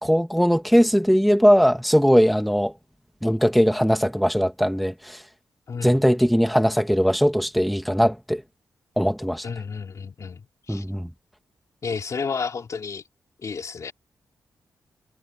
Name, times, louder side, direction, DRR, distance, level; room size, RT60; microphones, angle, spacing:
voice 1, 0.0-2.7 3.2-5.2 5.8-8.4 9.0-9.5 10.7-11.1, equal, ahead, 2.5 m, -20 dB
voice 2, 5.7-6.0 9.4-10.4 10.7-10.8 11.8-13.0 13.4-13.9, left 5 dB, 55° left, 3.2 m, -31 dB
cardioid pair, 90°, 7 cm